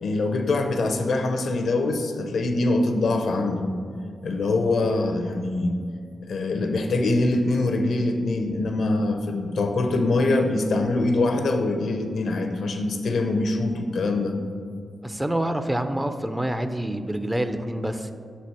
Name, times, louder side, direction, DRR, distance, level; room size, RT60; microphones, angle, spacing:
voice 1, 0.0-3.7 4.2-5.8 6.3-14.4, left 2 dB, 75° left, 6 dB, 0.5 m, -24 dB
voice 2, 15.0-18.1, right 1 dB, 15° right, 9 dB, 0.4 m, -27 dB
5.8 x 4.2 x 4.7 m, 2.3 s
supercardioid pair, 45°, 0 cm